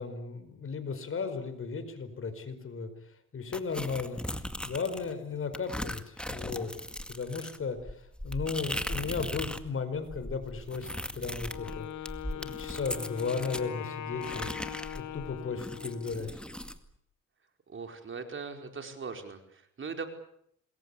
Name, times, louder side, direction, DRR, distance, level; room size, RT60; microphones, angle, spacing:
voice 1, 0.0-2.9 3.3-4.2 4.6-6.7 7.1-10.9 11.1-11.9 12.3-14.5 14.9-16.3, left 5 dB, 45° left, 10 dB, 4.9 m, -35 dB
sound 1, 3.5-5.1 5.5-9.7 10.0-13.7 14.2-16.8, left 1 dB, 5° left, 2.1 m, -38 dB
Wind instrument woodwind instrument, 11.5-16.3, left 10 dB, 75° left, 2.9 m, -41 dB
voice 2, 17.7-19.4 19.8-20.1, right 5 dB, 40° right, 6 dB, 4.8 m, -39 dB
27.0 x 21.5 x 8.5 m, 0.72 s
cardioid pair, 90°, 30 cm